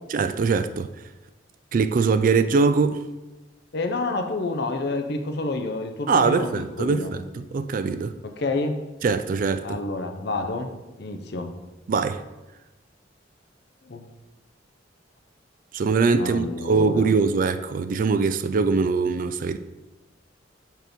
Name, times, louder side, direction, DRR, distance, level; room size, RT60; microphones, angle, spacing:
voice 1, 0.1-0.9 1.7-3.1 6.1-8.2 9.0-9.8 11.9-12.2 15.7-19.6, right 4 dB, 45° right, 0.3 m, -22 dB
voice 2, 3.7-7.1 8.2-8.8 9.6-10.7 11.0-11.5 13.8-14.0 16.1-17.1, left 2 dB, 60° left, 0.7 m, -29 dB
6.0 x 4.6 x 5.1 m
head